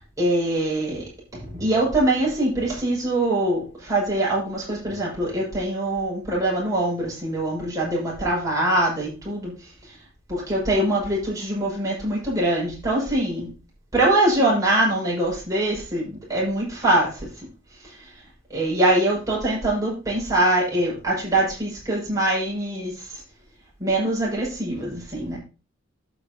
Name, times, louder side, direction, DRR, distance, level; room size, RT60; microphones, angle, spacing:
voice 1, 0.2-1.0 1.3-10.0 10.3-13.5 13.9-17.5 17.8-18.1 18.5-23.2 23.8-25.4, right 1 dB, 15° right, -5 dB, 6.5 m, -23 dB
11.5 x 8.9 x 3.0 m, 0.31 s
head